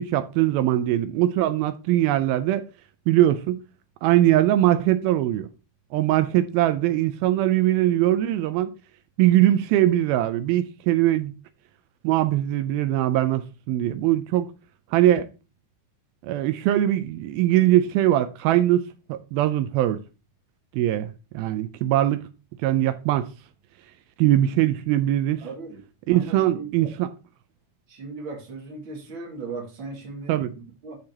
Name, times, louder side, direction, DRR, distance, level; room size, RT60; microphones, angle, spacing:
voice 1, 0.0-2.7 3.1-3.6 4.0-5.5 5.9-8.7 9.2-11.3 12.0-14.5 14.9-15.3 16.2-20.0 20.7-22.2 22.6-23.3 24.2-25.4 26.1-27.1 30.3-30.5, right 13 dB, 80° right, 2.3 m, -21 dB
voice 2, 25.4-25.8 26.1-26.9 27.9-31.0, right 4 dB, 40° right, 2.3 m, -37 dB
11.5 x 6.1 x 2.9 m
omnidirectional pair, 4.6 m